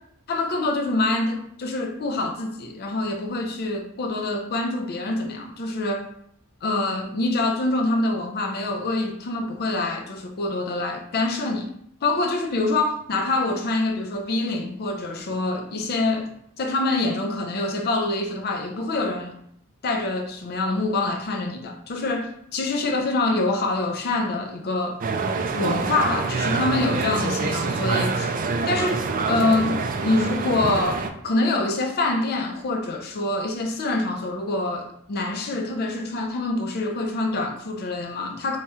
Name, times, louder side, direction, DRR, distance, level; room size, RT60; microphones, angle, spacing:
voice 1, 0.3-6.1 6.6-11.7 12.0-16.3 16.6-19.3 19.8-25.0 25.6-28.3 28.7-29.0 29.3-29.7 30.0-38.6, left 2 dB, 50° left, 0.5 m, -25 dB
sound 1, 25.0-31.1, right 4 dB, 40° right, 0.4 m, -26 dB
4.2 x 2.9 x 3.5 m
head